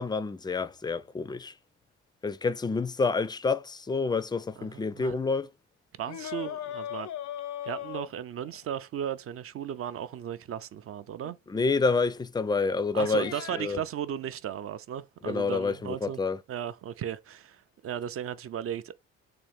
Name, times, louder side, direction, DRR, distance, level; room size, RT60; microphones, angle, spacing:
voice 1, 0.0-1.5 2.2-5.5 11.5-13.8 15.2-16.4, left 4 dB, 15° left, 0.3 m, -28 dB
voice 2, 4.6-5.1 6.0-7.1 7.7-11.4 12.9-16.2 16.5-18.9, right 9 dB, 50° right, 0.4 m, -36 dB
sound 1, 6.1-8.6 11.2-11.3 13.0-13.6, left 11 dB, 70° left, 0.5 m, -38 dB
3.8 x 2.5 x 3.3 m
cardioid pair, 90°, 30 cm